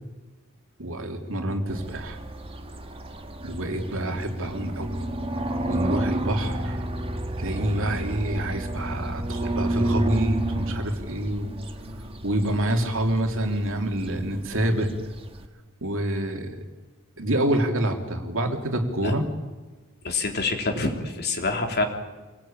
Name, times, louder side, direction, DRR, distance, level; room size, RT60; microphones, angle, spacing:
voice 1, 0.8-2.2 3.4-5.0 5.7-6.8 7.4-11.5 12.2-14.9 15.8-16.6 17.2-19.3, right 1 dB, 65° right, 3 dB, 3.0 m, -27 dB
sound 1, 1.7-15.5, right 1 dB, 25° right, 1.7 m, -31 dB
voice 2, 20.0-21.8, left 3 dB, 50° left, 4 dB, 3.2 m, -26 dB
26.5 x 19.0 x 8.8 m, 1.3 s
head